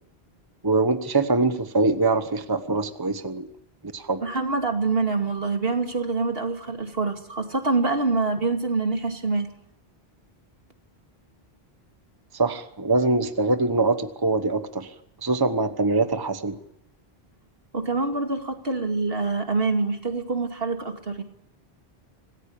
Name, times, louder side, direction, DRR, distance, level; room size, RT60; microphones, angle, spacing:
voice 1, 0.6-3.5 3.9-4.2 12.3-14.9 15.2-16.6, right 3 dB, 20° right, 10 dB, 1.1 m, -23 dB
voice 2, 4.2-9.5 17.7-21.2, right 3 dB, 65° right, 5 dB, 2.7 m, -25 dB
26.0 x 19.0 x 8.7 m, 0.77 s
omnidirectional pair, 1.1 m